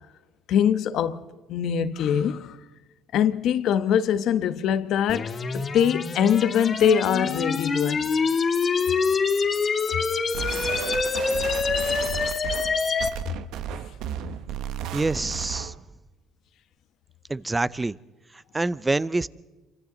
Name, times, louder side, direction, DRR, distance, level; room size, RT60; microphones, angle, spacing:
voice 1, 0.5-1.2 1.5-2.6 3.1-8.1, left 9 dB, 65° left, 1.1 m, -23 dB
sound 1, 5.1-13.1, left 5 dB, 35° left, 2.8 m, -25 dB
sound 2, 10.3-15.8, right 10 dB, 75° right, 1.0 m, -33 dB
voice 2, 14.9-15.7 17.3-17.9 18.5-19.3, right 2 dB, 15° right, 0.6 m, -26 dB
28.5 x 25.0 x 4.0 m
cardioid pair, 110°, 0 cm